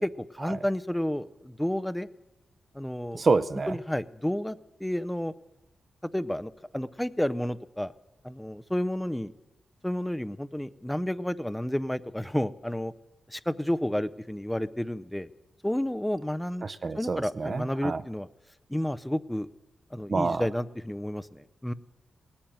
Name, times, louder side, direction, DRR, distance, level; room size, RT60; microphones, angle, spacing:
voice 1, 0.0-2.1 2.7-3.2 3.7-5.3 6.1-7.9 8.2-9.3 9.8-12.9 13.3-15.3 15.6-16.7 17.0-18.3 18.7-19.5 19.9-21.7, left 1 dB, 5° left, 14 dB, 0.5 m, -31 dB
voice 2, 3.1-3.8 16.6-18.0 20.1-20.4, right 4 dB, 45° right, 12 dB, 0.6 m, -27 dB
18.0 x 8.7 x 9.2 m, 1.1 s
cardioid pair, 75°, 0 cm